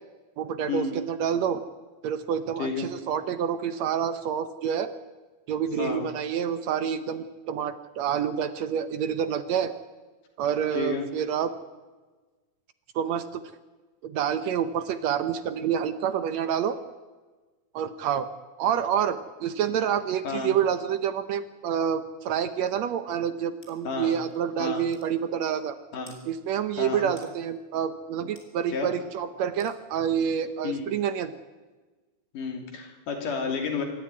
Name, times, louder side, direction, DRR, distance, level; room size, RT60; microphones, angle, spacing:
voice 1, 0.4-1.6 2.0-4.9 5.5-9.7 10.4-11.5 13.0-13.4 14.0-16.8 17.7-18.3 18.6-25.8 26.3-31.3, right 8 dB, 70° right, 11 dB, 1.9 m, -28 dB
voice 2, 10.7-11.1 20.2-20.5 23.8-24.2 24.6-24.8 25.9-26.2 26.8-27.1 28.7-28.9 30.6-30.8 32.3-33.8, left 5 dB, 90° left, 3 dB, 4.4 m, -31 dB
sound 1, 23.6-23.8 24.3-24.4 24.9-25.1 26.1-26.2 27.2-27.3 28.4-28.5 29.6-29.8, equal, 5° left, 3.4 m, -51 dB
24.5 x 13.0 x 9.7 m, 1.3 s
omnidirectional pair, 3.6 m